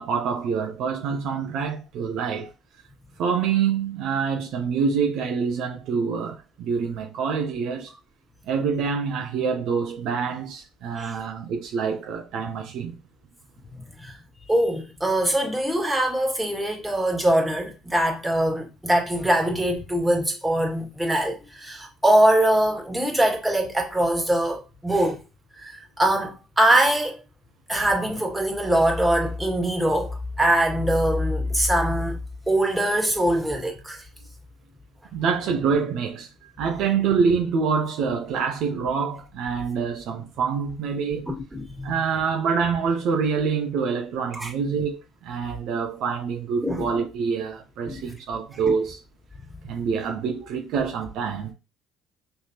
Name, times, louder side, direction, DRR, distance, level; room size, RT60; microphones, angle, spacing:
voice 1, 0.0-2.5 3.2-7.9 8.5-12.9 35.1-36.3 36.6-41.3 41.8-49.0 49.6-51.5, right 6 dB, 60° right, 0.7 m, -26 dB
voice 2, 14.5-25.2 25.6-27.2 27.7-32.2 32.5-34.0 41.3-41.9 44.3-44.5 46.6-46.8 47.9-48.0, right 1 dB, 10° right, 2.0 m, -23 dB
5.6 x 3.3 x 2.9 m
figure-of-eight pair, 55°, 0 cm